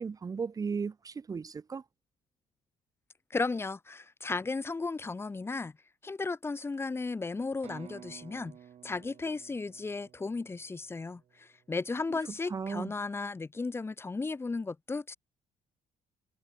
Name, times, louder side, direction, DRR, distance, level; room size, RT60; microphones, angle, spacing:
voice 1, 0.0-1.8 12.1-12.2 12.5-12.9, right 5 dB, 25° right, 2.8 m, -35 dB
voice 2, 3.3-5.7 6.0-8.5 8.8-15.2, left 3 dB, 15° left, 3.9 m, -35 dB
sound 1, 7.6-11.4, right 9 dB, 40° right, 6.6 m, -53 dB
cardioid pair, 165°, 15 cm